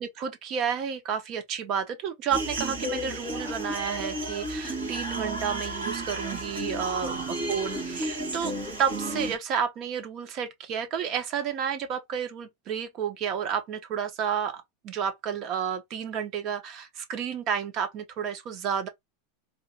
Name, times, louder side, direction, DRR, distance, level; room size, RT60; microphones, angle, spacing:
voice 1, 0.0-8.5 8.8-18.9, right 7 dB, 45° right, 1.0 m, -31 dB
sound 1, 2.3-9.4, right 1 dB, 90° right, 2.6 m, -32 dB
4.2 x 2.9 x 2.5 m
hypercardioid pair, 100°, 0 cm